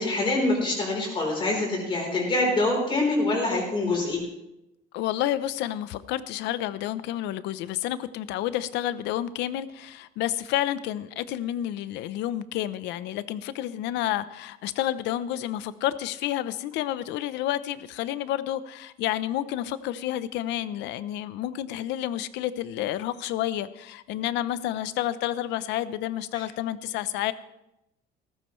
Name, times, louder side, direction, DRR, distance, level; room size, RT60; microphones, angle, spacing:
voice 1, 0.0-4.2, left 2 dB, 30° left, -1 dB, 3.9 m, -25 dB
voice 2, 4.9-27.3, left 12 dB, 85° left, 15 dB, 0.7 m, -30 dB
17.5 x 14.5 x 3.2 m, 0.90 s
cardioid pair, 170°, 18 cm